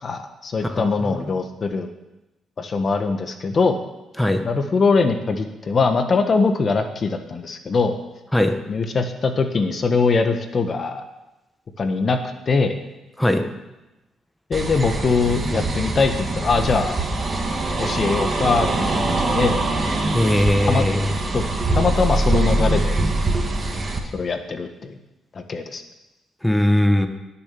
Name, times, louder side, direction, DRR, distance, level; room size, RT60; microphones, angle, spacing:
voice 1, 0.0-1.9 2.6-3.8 4.4-8.0 8.7-11.0 11.8-12.2 12.5-12.8 14.5-17.0 17.8-19.6 20.6-20.8 21.3-21.4 21.7-23.0 24.1-24.9 25.3-25.8, left 4 dB, 40° left, 7 dB, 1.3 m, -22 dB
voice 2, 0.6-1.3 4.2-4.4 8.3-8.5 13.2-13.4 20.1-21.1 26.4-27.1, left 1 dB, 5° left, 6 dB, 1.5 m, -19 dB
sound 1, 14.5-24.0, right 2 dB, 35° right, 2.2 m, -23 dB
19.0 x 7.2 x 6.9 m, 0.99 s
cardioid pair, 90°, 0 cm